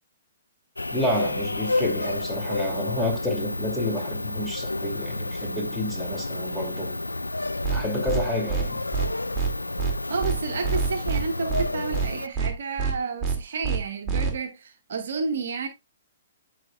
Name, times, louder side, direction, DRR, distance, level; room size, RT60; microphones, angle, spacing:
sound 1, 0.8-12.3, left 2 dB, 90° left, 0.4 m, -30 dB
voice 1, 0.9-7.0 7.7-8.8, left 1 dB, ahead, 2.5 m, -29 dB
sound 2, 7.6-7.8 8.1-8.2 8.5-8.6 8.9-9.1 9.4-9.5 9.8-9.9 10.2-10.4 10.6-11.2 11.5-11.6 11.9-12.1 12.4-12.5 12.8-12.9 13.2-13.4 13.6-13.8 14.1-14.3, right 5 dB, 15° right, 2.2 m, -25 dB
voice 2, 10.1-15.7, right 4 dB, 60° right, 1.0 m, -31 dB
12.5 x 5.1 x 2.3 m
figure-of-eight pair, 120°, 0 cm